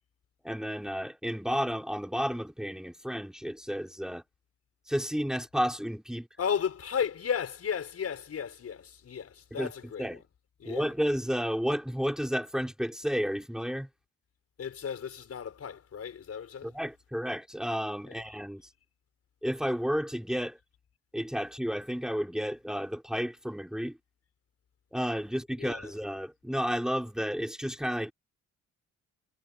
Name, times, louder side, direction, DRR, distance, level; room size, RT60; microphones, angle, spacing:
voice 1, 0.4-4.2 4.9-6.3 9.5-9.7 10.0-10.2 10.6-13.9 16.6-18.6 19.4-20.6 21.1-24.0 24.9-28.1, equal, ahead, 4.5 m, -32 dB
voice 2, 6.4-10.2 10.6-10.9 14.6-16.7 18.1-18.2 25.6-25.9, left 7 dB, 55° left, 5.7 m, -34 dB
cardioid pair, 90°, 30 cm